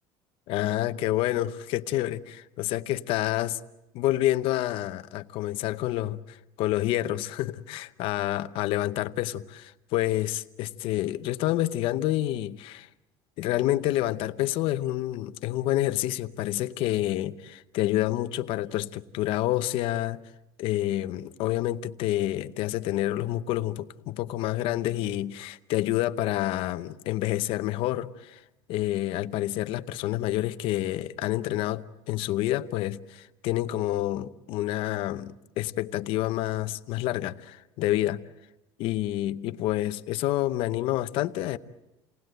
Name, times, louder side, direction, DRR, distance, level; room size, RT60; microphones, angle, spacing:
voice 1, 0.5-3.6 3.9-12.9 13.4-20.2 20.6-28.4 28.7-38.2 38.8-41.6, left 15 dB, 55° left, 0.8 m, -28 dB
29.0 x 19.0 x 7.9 m
cardioid pair, 175°, 11 cm